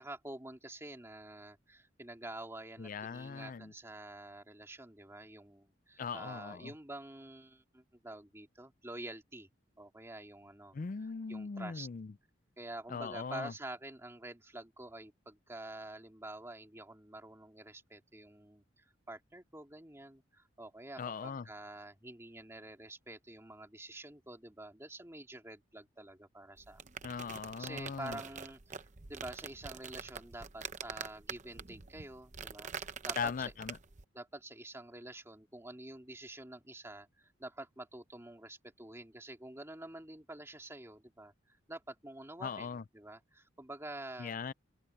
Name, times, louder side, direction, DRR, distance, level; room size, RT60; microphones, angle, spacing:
voice 1, 0.0-9.5 9.8-10.7 11.3-11.9 12.6-26.8 27.2-28.8 29.1-33.3 34.1-44.3, right 1 dB, 15° right, 2.4 m, -48 dB
voice 2, 2.8-3.7 6.0-6.7 10.7-12.1 12.9-13.5 21.0-21.4 27.0-28.2 33.2-33.8 42.4-42.8 44.2-44.5, left 5 dB, 40° left, 0.4 m, -39 dB
sound 1, 26.6-34.0, right 6 dB, 35° right, 0.8 m, -45 dB
open air
head